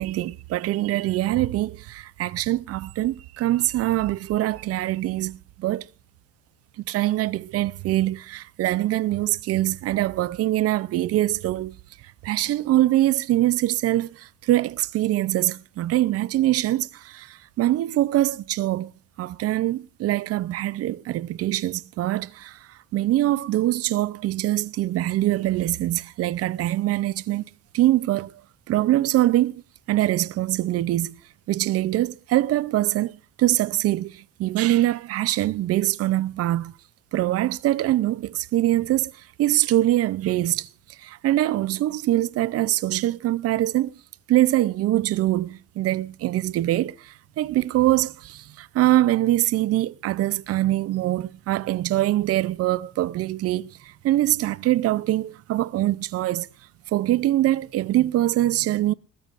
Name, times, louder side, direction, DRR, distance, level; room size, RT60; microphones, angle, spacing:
voice 1, 0.0-5.9 6.9-11.8 12.2-18.9 19.2-22.6 22.9-27.4 27.7-28.3 28.7-29.5 29.9-31.2 31.5-36.7 37.1-39.1 39.4-44.0 44.3-56.5 56.9-58.9, right 14 dB, 50° right, 0.6 m, -23 dB
20.5 x 13.5 x 2.5 m
cardioid pair, 175°, 31 cm